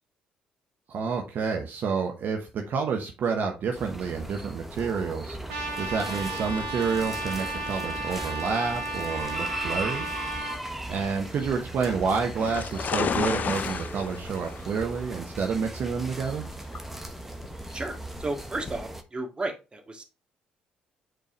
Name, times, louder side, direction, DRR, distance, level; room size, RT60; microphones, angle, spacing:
voice 1, 0.9-5.4 5.8-10.1 10.9-16.4, right 5 dB, 55° right, 2 dB, 1.1 m, -29 dB
sound 1, 3.7-19.0, right 1 dB, 5° right, 1.3 m, -38 dB
Trumpet, 5.5-10.6, right 2 dB, 75° right, 1.6 m, -34 dB
sound 2, 6.5-18.8, left 6 dB, 45° left, 0.6 m, -36 dB
voice 2, 17.7-20.0, right 2 dB, 25° right, 3 dB, 2.0 m, -33 dB
7.8 x 4.5 x 3.1 m, 0.28 s
hypercardioid pair, 50°, 4 cm